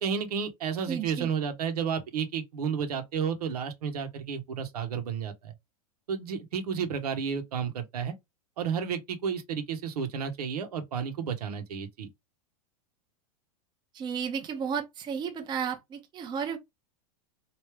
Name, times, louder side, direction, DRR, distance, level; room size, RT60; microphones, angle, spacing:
voice 1, 0.0-5.5 6.1-8.1 8.6-12.1, right 7 dB, 85° right, 1.0 m, -32 dB
voice 2, 0.9-1.3 13.9-16.6, right 7 dB, 25° right, 0.7 m, -33 dB
3.3 x 2.7 x 3.2 m
supercardioid pair, 130°, 19 cm